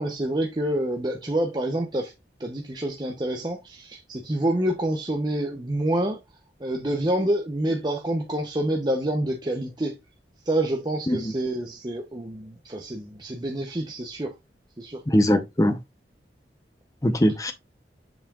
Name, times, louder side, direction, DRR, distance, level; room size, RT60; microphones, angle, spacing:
voice 1, 0.0-2.1 2.4-6.2 6.6-10.0 10.5-14.3 14.8-15.0, right 1 dB, 25° right, 0.7 m, -27 dB
voice 2, 15.1-15.8 17.0-17.5, equal, 20° left, 0.7 m, -21 dB
7.1 x 5.6 x 2.3 m
head